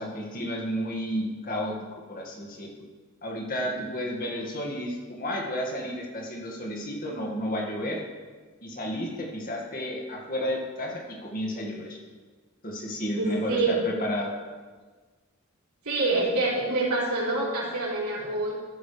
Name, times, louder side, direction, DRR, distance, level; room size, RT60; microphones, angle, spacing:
voice 1, 0.0-1.7 2.1-2.7 3.2-8.0 8.6-12.0 12.6-14.3, equal, 40° left, -1 dB, 2.0 m, -32 dB
voice 2, 13.1-13.9 15.8-18.5, right 2 dB, 90° right, -5 dB, 3.9 m, -26 dB
14.0 x 11.0 x 3.4 m, 1.4 s
head